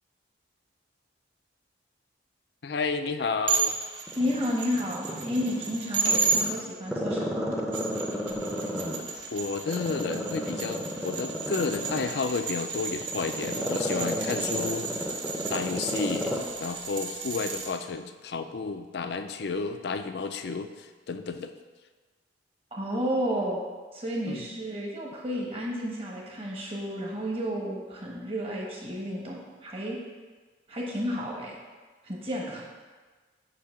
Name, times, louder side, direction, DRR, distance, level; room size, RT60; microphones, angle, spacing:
voice 1, 2.6-3.8 6.0-6.4 9.3-14.9 15.5-16.3 16.6-21.5 24.3-24.4, left 4 dB, 60° left, 8 dB, 0.4 m, -31 dB
sound 1, 3.5-6.4 7.5-17.7, right 4 dB, 80° right, 0.9 m, -33 dB
Growling, 4.1-5.8 6.2-9.2 9.7-16.5 16.8-16.9, equal, 5° right, 0.6 m, -32 dB
voice 2, 4.1-7.6 22.7-23.6 23.9-30.0 30.7-31.6 32.0-32.6, equal, 30° right, -2 dB, 1.2 m, -32 dB
8.2 x 2.8 x 5.6 m, 1.4 s
head